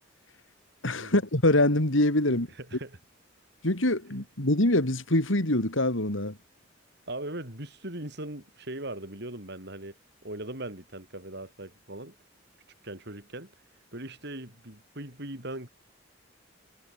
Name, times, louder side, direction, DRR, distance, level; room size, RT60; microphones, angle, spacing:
voice 1, 0.8-2.5 3.6-6.4, left 1 dB, 80° left, 4.0 m, -24 dB
voice 2, 2.6-3.0 7.1-10.0 10.2-12.1 12.8-13.5 13.9-15.7, right 1 dB, 60° right, 6.0 m, -39 dB
head